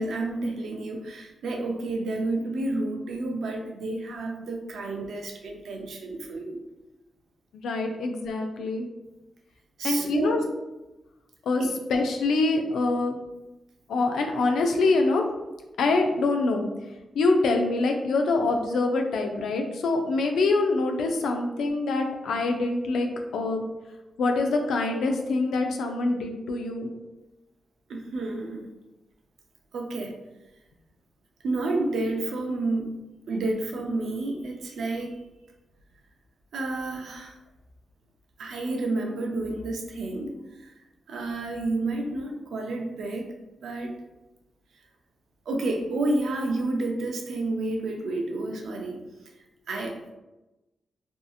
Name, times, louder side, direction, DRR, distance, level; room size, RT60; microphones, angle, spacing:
voice 1, 0.0-6.6 9.8-10.4 11.6-11.7 27.9-28.7 29.7-30.1 31.4-33.0 33.3-35.2 36.5-37.3 38.4-40.8 41.1-43.3 43.6-43.9 45.5-49.0 49.7-50.1, right 2 dB, 80° right, 2 dB, 0.4 m, -30 dB
voice 2, 7.5-8.9 9.8-10.4 11.5-11.6 11.9-13.2 13.9-15.2 15.8-16.7 17.1-23.7 24.2-26.9, left 3 dB, 90° left, 3 dB, 0.4 m, -25 dB
2.7 x 2.5 x 2.3 m, 1.0 s
cardioid pair, 70°, 0 cm